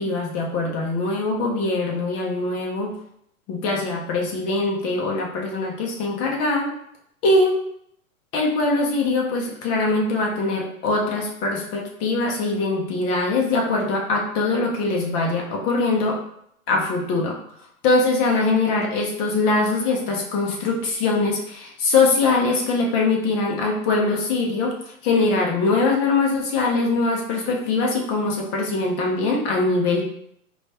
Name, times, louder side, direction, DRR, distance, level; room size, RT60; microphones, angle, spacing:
voice 1, 0.0-2.9 3.5-6.7 7.2-7.5 8.3-16.2 16.7-17.4 17.8-24.7 25.0-30.0, left 3 dB, 20° left, 0 dB, 0.4 m, -22 dB
4.4 x 2.3 x 2.7 m, 0.72 s
hypercardioid pair, 125°, 44 cm